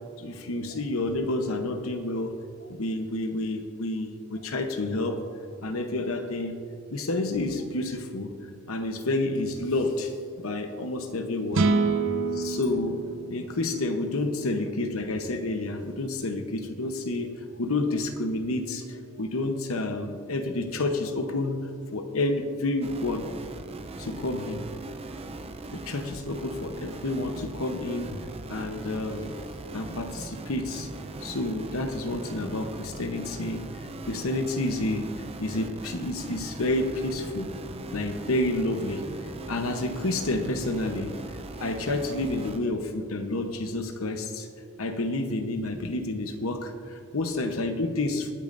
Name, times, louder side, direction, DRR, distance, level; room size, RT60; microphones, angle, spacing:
voice 1, 0.2-2.3 2.7-5.3 5.6-6.6 6.9-8.4 8.7-11.6 12.3-13.0 13.3-23.3 24.0-24.7 25.7-28.2 28.5-29.3 29.7-30.9 31.2-33.7 34.1-37.5 37.9-41.2 41.6-44.5 44.8-48.3, left 2 dB, 80° left, 6 dB, 0.9 m, -29 dB
sound 1, 11.5-14.8, right 4 dB, 65° right, 0.7 m, -28 dB
sound 2, 22.8-42.6, right 2 dB, 30° right, 0.6 m, -40 dB
24.5 x 8.7 x 2.6 m, 2.3 s
head